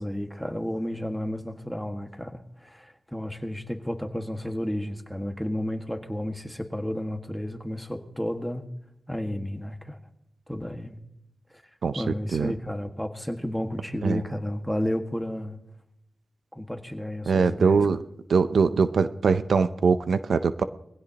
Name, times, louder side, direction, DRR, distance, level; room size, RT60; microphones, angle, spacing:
voice 1, 0.0-8.7 9.1-10.0 10.5-11.0 11.9-15.6 16.5-17.9, equal, ahead, 6 dB, 1.7 m, -32 dB
voice 2, 17.3-18.0 18.3-20.6, right 5 dB, 80° right, 12 dB, 0.6 m, -22 dB
22.5 x 16.0 x 2.9 m, 0.82 s
cardioid pair, 60°, 0 cm